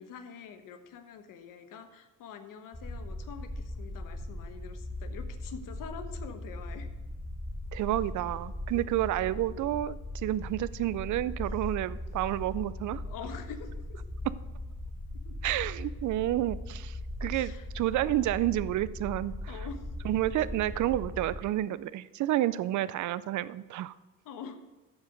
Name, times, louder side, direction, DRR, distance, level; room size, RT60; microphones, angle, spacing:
voice 1, 0.0-6.9 8.7-8.8 11.5-11.6 13.0-14.0 15.1-15.4 17.3-17.7 19.5-20.1 24.2-24.6, left 6 dB, 80° left, 8 dB, 1.2 m, -45 dB
sound 1, 2.7-21.4, left 1 dB, 10° left, 1.5 m, -39 dB
voice 2, 7.7-13.0 15.4-19.3 20.0-23.9, right 14 dB, 65° right, 17 dB, 0.5 m, -30 dB
14.0 x 4.8 x 5.2 m, 1.2 s
cardioid pair, 90°, 32 cm